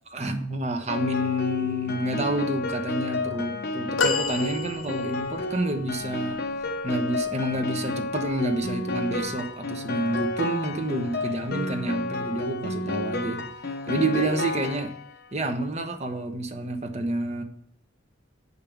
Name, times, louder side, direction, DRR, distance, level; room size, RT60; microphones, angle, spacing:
voice 1, 0.1-6.4 6.8-13.4 13.9-14.9 15.3-17.4, right 1 dB, 35° right, 5 dB, 1.1 m, -28 dB
Piano, 0.9-15.3, left 2 dB, 55° left, 0.9 m, -31 dB
sound 1, 4.0-5.4 6.1-6.2, left 4 dB, 85° left, 0.7 m, -28 dB
6.5 x 5.4 x 7.1 m, 0.66 s
head